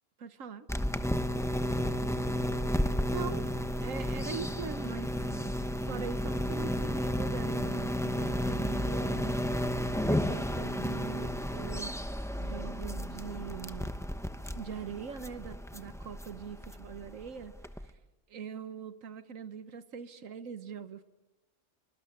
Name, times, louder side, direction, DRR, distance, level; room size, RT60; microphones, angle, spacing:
voice 1, 0.2-0.7 3.1-5.6 5.8-9.4 10.0-12.0 12.3-13.9 14.5-17.9 18.3-21.0, right 7 dB, 85° right, 1.5 m, -42 dB
sound 1, 0.7-17.9, equal, 5° left, 0.8 m, -33 dB
27.0 x 25.0 x 8.7 m
omnidirectional pair, 1.3 m